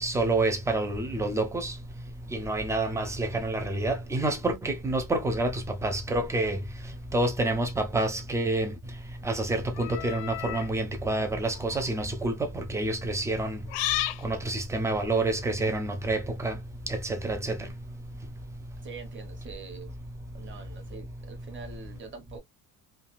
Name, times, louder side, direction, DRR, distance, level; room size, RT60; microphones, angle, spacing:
voice 1, 0.0-1.7 2.5-5.5 5.8-6.6 7.1-8.7 9.3-13.6 14.2-16.5 17.2-17.6, right 2 dB, 10° right, 0.3 m, -28 dB
sound 1, 9.7-10.7 11.6-11.8 13.7-14.2, left 14 dB, 90° left, 0.6 m, -32 dB
voice 2, 18.8-19.9 20.3-22.4, right 5 dB, 30° right, 1.0 m, -44 dB
3.3 x 2.3 x 2.5 m
cardioid pair, 170°, 40 cm